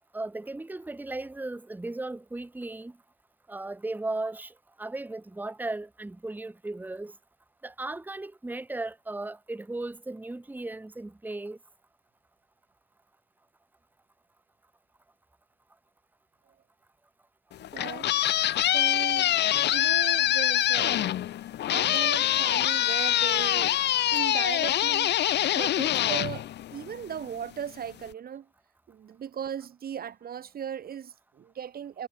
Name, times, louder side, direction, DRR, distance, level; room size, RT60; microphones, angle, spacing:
voice 1, 0.1-3.0 3.5-7.1 7.6-11.6, right 2 dB, 10° right, 1.0 m, -36 dB
sound 1, 17.5-27.2, left 12 dB, 60° left, 0.5 m, -25 dB
voice 2, 17.7-19.3 19.7-21.3 21.7-23.8 24.1-25.1 25.5-28.5 28.9-32.1, right 8 dB, 50° right, 0.9 m, -37 dB
cardioid pair, 90°, 20 cm